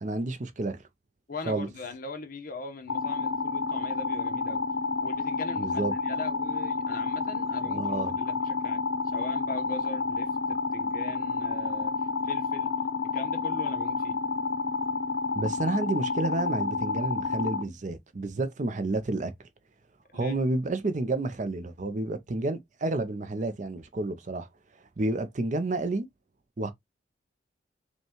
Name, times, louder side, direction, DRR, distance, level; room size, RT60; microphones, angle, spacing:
voice 1, 0.0-0.8 1.5-1.7 5.6-5.9 7.7-8.1 15.3-19.3 20.1-24.5 25.0-26.1 26.6-26.7, right 2 dB, 40° right, 0.5 m, -30 dB
voice 2, 1.3-4.6 5.0-12.7 13.1-14.2 20.1-20.4, left 3 dB, 50° left, 0.9 m, -41 dB
sound 1, 2.9-17.6, left 4 dB, 90° left, 0.6 m, -30 dB
5.4 x 2.3 x 2.9 m
head